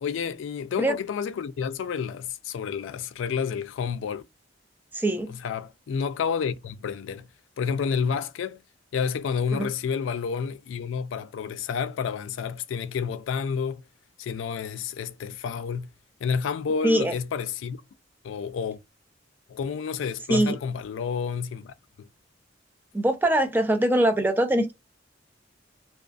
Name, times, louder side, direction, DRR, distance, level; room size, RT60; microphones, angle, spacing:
voice 1, 0.0-4.2 5.3-7.3 7.6-8.6 8.9-13.8 14.2-15.9 16.2-17.8 18.2-18.8 19.5-22.1, left 6 dB, 80° left, 0.3 m, -30 dB
voice 2, 4.9-5.3 9.5-9.7 16.8-17.1 20.3-20.6 22.9-24.7, right 1 dB, 10° right, 0.3 m, -22 dB
2.3 x 2.3 x 2.4 m
head